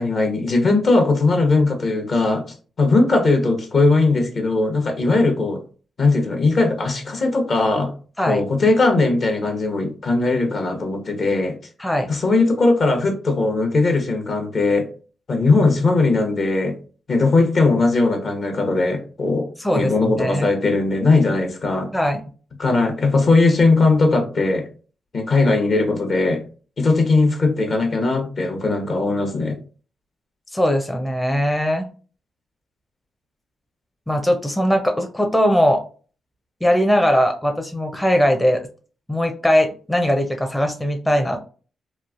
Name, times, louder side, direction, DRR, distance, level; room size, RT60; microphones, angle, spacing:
voice 1, 0.0-2.5 2.8-5.6 6.0-7.9 8.3-11.6 12.1-14.9 15.3-16.8 17.1-21.9 22.6-24.7 25.1-26.4 26.8-29.6, left 3 dB, 55° left, 0.9 m, -19 dB
voice 2, 19.6-20.5 21.9-22.2 30.5-31.9 34.1-35.8 36.6-38.6 39.1-41.4, equal, 10° left, 0.5 m, -20 dB
3.1 x 2.4 x 2.4 m
cardioid pair, 60°, 0 cm